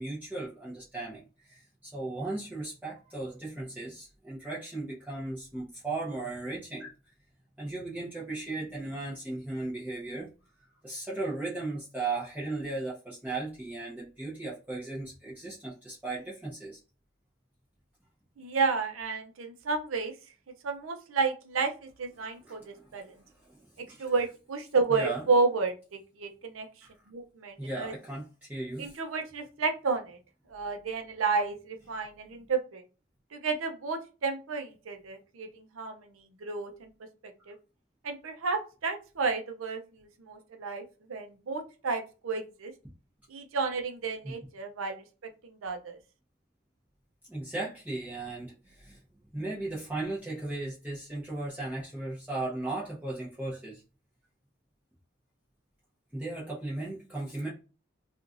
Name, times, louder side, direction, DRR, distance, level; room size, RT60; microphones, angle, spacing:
voice 1, 0.0-6.9 7.6-10.3 10.8-16.8 22.4-22.9 23.4-24.1 24.9-25.2 26.8-26.9 27.6-29.0 44.2-44.3 47.3-49.0 49.3-53.8 56.1-57.5, right 2 dB, 10° right, -7 dB, 0.7 m, -36 dB
voice 2, 18.4-20.1 20.6-23.1 23.8-26.7 27.1-27.9 28.8-30.2 30.5-32.8 33.3-36.9 37.5-37.6 38.0-42.7 43.3-45.0 45.4-46.0, right 4 dB, 85° right, 5 dB, 0.6 m, -31 dB
3.0 x 2.4 x 2.5 m, 0.33 s
head